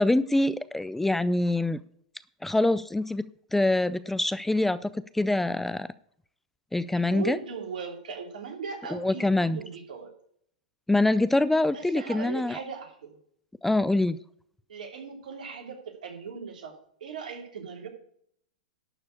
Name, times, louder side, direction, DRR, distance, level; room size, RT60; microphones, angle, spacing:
voice 1, 0.0-1.8 2.4-5.9 6.7-7.4 8.9-9.6 10.9-12.6 13.6-14.2, left 2 dB, 5° left, 16 dB, 0.4 m, -25 dB
voice 2, 6.9-10.1 11.7-13.2 14.7-16.7 17.0-17.9, right 5 dB, 75° right, 2 dB, 3.4 m, -38 dB
12.0 x 4.8 x 8.4 m, 0.65 s
hypercardioid pair, 115°, 4 cm